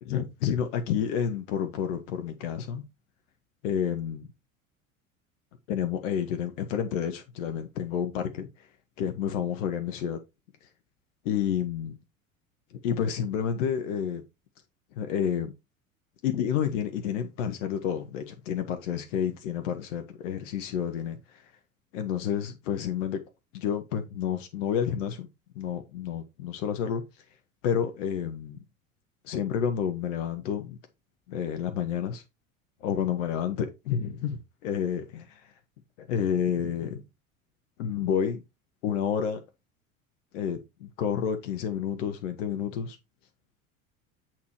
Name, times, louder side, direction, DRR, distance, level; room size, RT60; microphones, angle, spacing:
voice 1, 0.0-2.8 3.6-4.2 5.7-8.7 9.0-10.2 10.6-10.7 11.2-12.0 12.8-14.2 14.9-15.5 16.2-21.5 21.9-23.2 23.5-25.3 25.5-27.0 27.6-28.6 29.2-30.8 31.3-32.2 32.8-35.5 36.0-37.0 37.8-38.4 38.8-39.4 40.3-43.0, left 8 dB, 60° left, 1.2 m, -30 dB
8.5 x 4.5 x 4.5 m
figure-of-eight pair, 75°, 42 cm